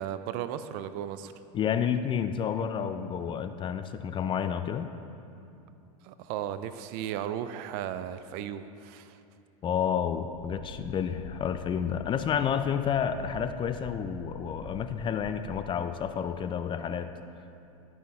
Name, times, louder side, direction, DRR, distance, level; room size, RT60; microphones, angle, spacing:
voice 1, 0.0-1.3 6.0-9.2, right 10 dB, 55° right, 12 dB, 0.4 m, -35 dB
voice 2, 1.5-4.9 9.6-17.1, left 8 dB, 30° left, 10 dB, 0.4 m, -30 dB
sound 1, 10.3-16.5, right 1 dB, 75° right, 1.5 m, -46 dB
12.0 x 6.0 x 3.5 m, 2.7 s
hypercardioid pair, 100°, 18 cm